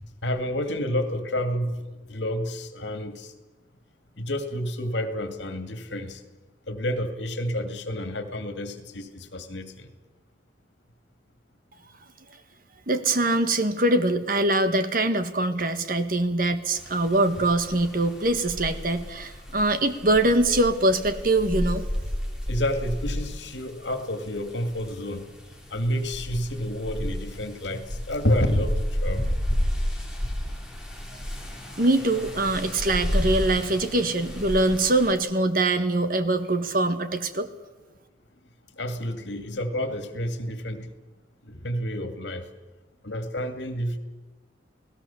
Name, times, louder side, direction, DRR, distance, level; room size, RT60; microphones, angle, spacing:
voice 1, 0.2-1.8 2.1-3.3 4.2-6.2 6.7-9.9 22.5-25.3 25.7-29.4 38.7-40.9 41.4-42.5 43.0-44.0, equal, 75° left, 8 dB, 2.3 m, -29 dB
voice 2, 12.9-21.8 31.8-37.5, right 2 dB, 50° right, 10 dB, 1.6 m, -23 dB
sound 1, 16.8-35.1, equal, 5° right, 3.8 m, -32 dB
29.0 x 18.5 x 7.2 m, 1.2 s
head